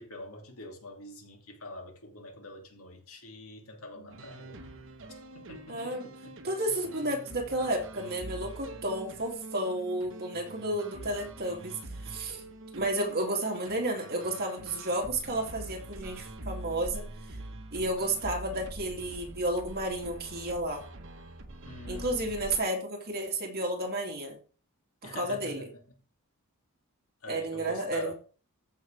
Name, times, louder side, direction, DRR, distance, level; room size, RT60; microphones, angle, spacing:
voice 1, 0.0-4.6 5.3-6.3 21.7-22.3 25.0-25.7 27.2-28.1, left 2 dB, 65° left, 2.6 m, -44 dB
sound 1, 4.1-22.6, right 2 dB, 60° right, 1.4 m, -44 dB
voice 2, 5.7-6.1 6.4-12.4 12.7-17.4 17.7-20.8 21.9-24.4 25.0-25.7 27.3-28.1, right 1 dB, 45° right, 2.8 m, -32 dB
14.5 x 6.3 x 3.4 m
head